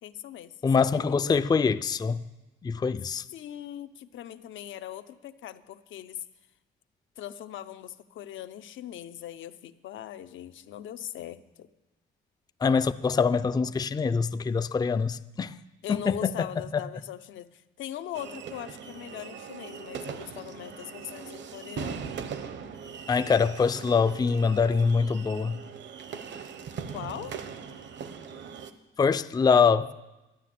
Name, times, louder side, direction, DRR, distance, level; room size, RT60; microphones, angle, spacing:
voice 1, 0.0-0.5 0.9-1.3 3.3-6.2 7.2-11.7 15.8-22.2 26.9-27.4, left 11 dB, 75° left, 0.7 m, -40 dB
voice 2, 0.6-2.2 2.6-3.2 12.6-15.6 15.9-16.5 23.1-25.6 29.0-29.9, left 5 dB, 20° left, 0.4 m, -24 dB
sound 1, 18.1-28.7, right 6 dB, 65° right, 1.0 m, -40 dB
12.0 x 9.2 x 7.5 m
cardioid pair, 90°, 20 cm